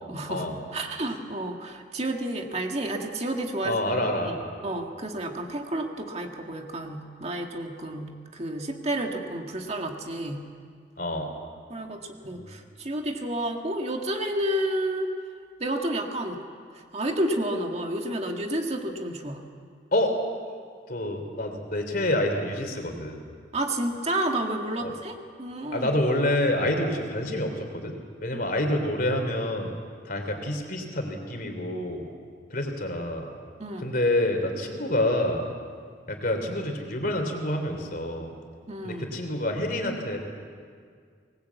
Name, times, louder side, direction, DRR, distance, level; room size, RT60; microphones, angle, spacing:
voice 1, 0.1-4.4 4.6-10.4 11.7-15.1 15.6-16.4 16.7-19.4 23.5-25.9 33.6-33.9 38.7-39.1, right 1 dB, 35° right, 3 dB, 1.9 m, -30 dB
voice 2, 3.6-4.5 11.0-11.3 12.3-12.5 19.9-20.1 20.9-23.2 24.8-24.9 25.7-28.0 28.2-29.7 30.0-32.1 32.5-33.3 33.8-35.4 36.1-38.3 38.8-40.2, left 1 dB, 50° left, 5 dB, 3.4 m, -27 dB
24.5 x 19.5 x 8.4 m, 2.1 s
head